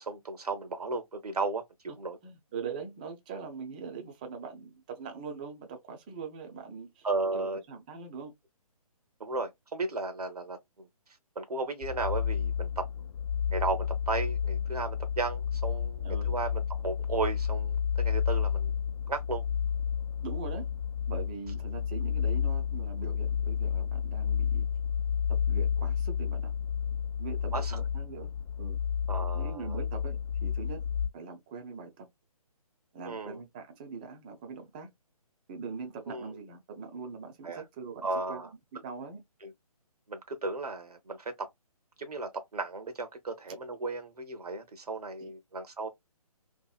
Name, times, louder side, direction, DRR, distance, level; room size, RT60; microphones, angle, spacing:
voice 1, 0.0-2.2 7.0-7.6 9.2-10.9 11.4-12.9 13.5-18.7 19.1-19.4 27.5-27.8 29.1-29.8 33.0-33.4 36.1-36.2 37.4-37.6 38.0-38.5 39.4-39.5 40.1-41.5 42.0-45.9, right 3 dB, 80° right, 0.8 m, -35 dB
voice 2, 2.2-7.1 7.3-8.3 16.0-16.3 20.2-20.7 21.1-24.7 25.3-26.5 27.2-28.8 29.3-30.8 31.1-32.1 32.9-34.9 35.5-38.4 38.8-39.2 45.2-45.3, right 5 dB, 15° right, 0.4 m, -42 dB
sound 1, 11.8-31.1, left 8 dB, 55° left, 0.4 m, -31 dB
2.7 x 2.5 x 2.3 m
figure-of-eight pair, 145°, 19 cm